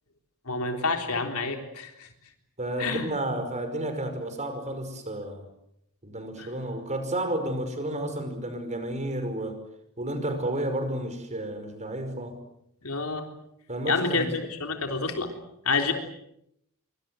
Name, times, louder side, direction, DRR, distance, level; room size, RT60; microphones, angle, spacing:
voice 1, 0.5-2.1 2.8-3.0 6.4-6.5 12.8-13.3 13.9-15.3 15.7-15.9, left 4 dB, 70° left, 5 dB, 3.7 m, -28 dB
voice 2, 2.6-5.4 6.0-9.6 10.0-12.4 13.7-14.3, right 1 dB, 30° right, 8 dB, 5.5 m, -31 dB
25.5 x 25.0 x 7.8 m, 0.77 s
head